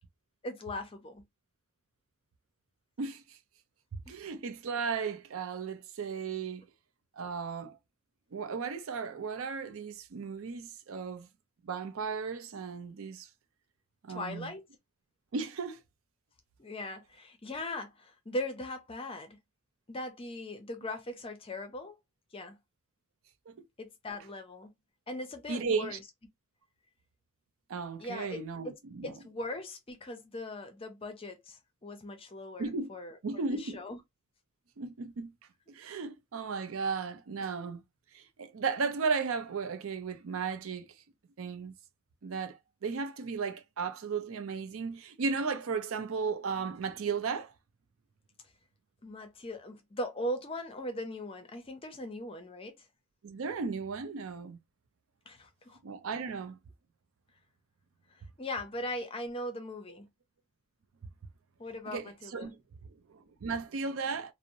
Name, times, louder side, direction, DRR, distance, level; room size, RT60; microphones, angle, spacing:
voice 1, 0.4-1.2 4.1-4.2 14.1-14.6 16.6-19.4 19.9-22.0 22.3-22.6 23.8-24.7 25.1-26.0 28.0-28.4 28.6-33.1 33.5-34.0 49.0-52.8 55.3-55.8 58.4-60.1 61.6-62.5, left 1 dB, 25° left, 0.5 m, -39 dB
voice 2, 3.0-3.4 3.9-6.6 7.1-7.8 8.3-11.3 11.6-13.3 14.0-14.5 15.3-15.8 23.5-23.7 25.5-26.0 27.7-29.1 32.6-33.0 33.2-33.8 34.8-35.3 35.7-37.8 38.1-40.9 41.4-41.7 42.2-47.5 53.2-54.6 55.8-56.6 61.9-64.3, right 5 dB, 70° right, 0.5 m, -35 dB
2.7 x 2.0 x 2.6 m
head